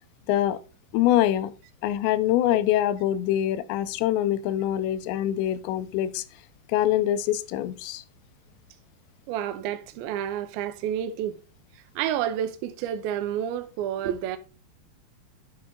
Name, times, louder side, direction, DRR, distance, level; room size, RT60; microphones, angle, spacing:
voice 1, 0.3-0.6 0.9-1.5 1.8-6.2 6.7-8.0, left 12 dB, 85° left, 2.8 m, -24 dB
voice 2, 9.3-11.4 12.0-14.4, right 10 dB, 90° right, 2.1 m, -29 dB
9.8 x 4.3 x 3.7 m
omnidirectional pair, 5.1 m